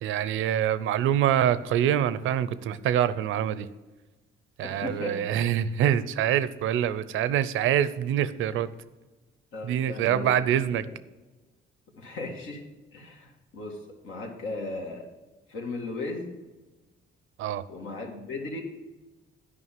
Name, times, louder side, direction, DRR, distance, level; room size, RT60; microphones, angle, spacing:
voice 1, 0.0-3.7 4.6-8.7 9.6-10.9 17.4-17.6, right 10 dB, 80° right, 16 dB, 0.5 m, -25 dB
voice 2, 4.6-5.3 9.5-10.4 10.8-10.9 12.0-12.6 12.9-13.8 14.0-15.1 15.5-16.3 17.7-18.6, left 3 dB, 85° left, 1 dB, 1.9 m, -36 dB
9.9 x 5.3 x 7.4 m, 1.2 s
cardioid pair, 90°, 20 cm